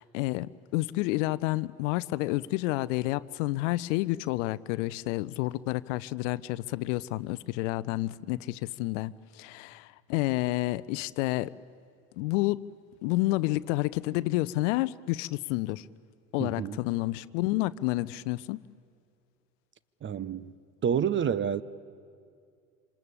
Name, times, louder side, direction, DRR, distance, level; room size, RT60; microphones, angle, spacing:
voice 1, 0.0-11.5 12.2-12.7 13.0-15.9 16.3-18.6, left 19 dB, 60° left, 0.7 m, -30 dB
voice 2, 16.4-16.8 20.0-20.5 20.8-21.6, right 8 dB, 30° right, 0.8 m, -28 dB
26.5 x 26.0 x 8.7 m
hypercardioid pair, 70°, 42 cm